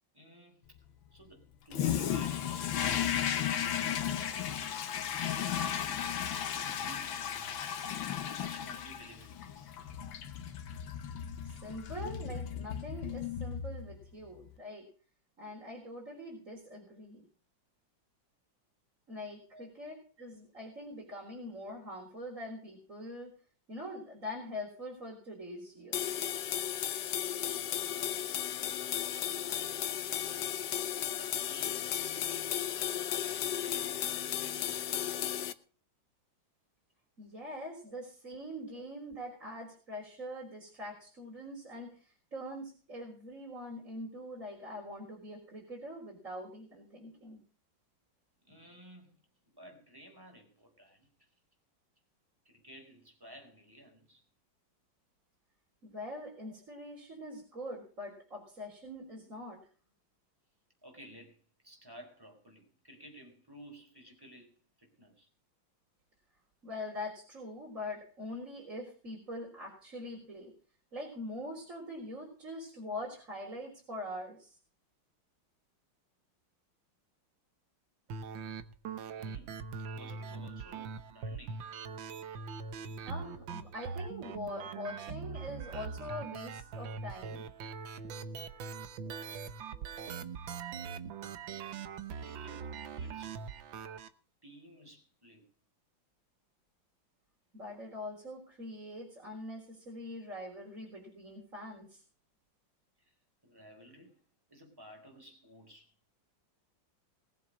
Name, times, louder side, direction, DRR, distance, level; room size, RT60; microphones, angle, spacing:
voice 1, 0.1-0.8 1.1-6.1 6.5-7.9 8.4-9.7 19.5-19.7 28.4-30.0 31.2-35.1 37.8-38.0 38.6-38.8 39.1-39.3 48.4-51.3 52.4-54.2 56.4-56.6 59.2-59.4 60.8-65.3 79.1-79.7 79.9-81.7 92.2-93.4 94.4-95.5 97.9-98.0 103.0-103.1 103.4-104.2 104.5-106.0, equal, 10° right, 3 dB, 4.3 m, -55 dB
Toilet flush, 1.7-14.0, left 9 dB, 80° left, 1.9 m, -35 dB
voice 2, 11.5-14.9 15.4-17.2 19.1-23.3 23.7-26.0 37.2-47.4 55.8-59.6 66.6-70.5 70.9-74.6 83.1-87.4 97.5-102.0, left 1 dB, 40° right, -2 dB, 4.4 m, -43 dB
sound 1, 25.9-35.5, left 10 dB, 65° left, 1.3 m, -34 dB
sound 2, 78.1-94.1, right 5 dB, 75° right, 1.8 m, -42 dB
20.0 x 7.6 x 6.2 m, 0.41 s
omnidirectional pair, 2.2 m